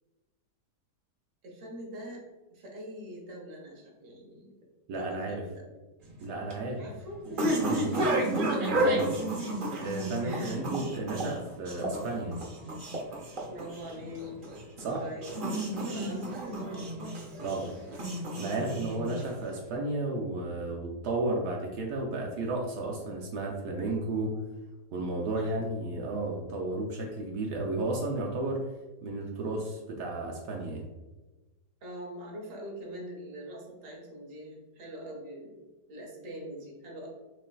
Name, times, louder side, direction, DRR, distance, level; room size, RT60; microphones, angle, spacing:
voice 1, 1.4-2.2 2.5-4.5 4.9-5.6 6.8-7.2 7.7-8.1 10.2-10.6 13.4-14.3 15.0-15.3 15.6-16.9 25.3-25.5 31.8-35.6 35.9-37.1, equal, 40° right, -2 dB, 1.0 m, -43 dB
voice 2, 4.9-5.4 6.2-6.8 7.6-7.9 8.7-9.1 9.8-12.4 14.8-15.0 17.4-17.7 18.3-24.3 24.9-28.6 29.0-30.9, right 2 dB, 75° right, -1 dB, 1.2 m, -33 dB
sound 1, 6.0-19.6, right 1 dB, 55° right, 0.5 m, -32 dB
6.3 x 2.5 x 2.3 m, 1.1 s
omnidirectional pair, 1.8 m